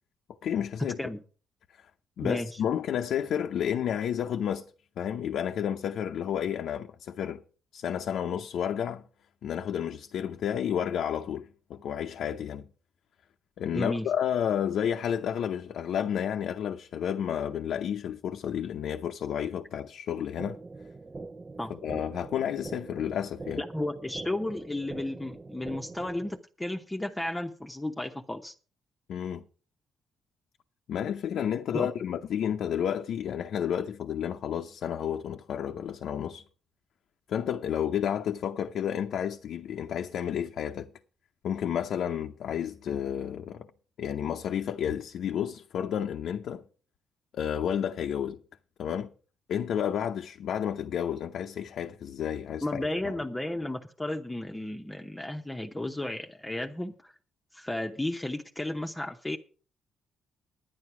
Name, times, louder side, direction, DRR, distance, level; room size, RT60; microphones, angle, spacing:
voice 1, 0.4-1.0 2.2-4.7 5.0-7.4 7.7-9.0 9.4-12.6 13.6-20.6 21.7-23.6 29.1-29.4 30.9-36.4 37.3-40.9 41.4-43.7 44.0-46.6 47.3-48.4 48.8-49.1 49.5-53.2, left 9 dB, 70° left, 0.7 m, -31 dB
voice 2, 2.2-2.6 13.7-14.1 21.6-21.7 23.6-28.5 31.7-31.9 52.6-57.1 57.5-59.4, left 1 dB, 10° left, 0.9 m, -33 dB
sound 1, 20.4-26.4, right 3 dB, 30° right, 0.5 m, -43 dB
10.0 x 9.8 x 5.9 m
cardioid pair, 90°, 0 cm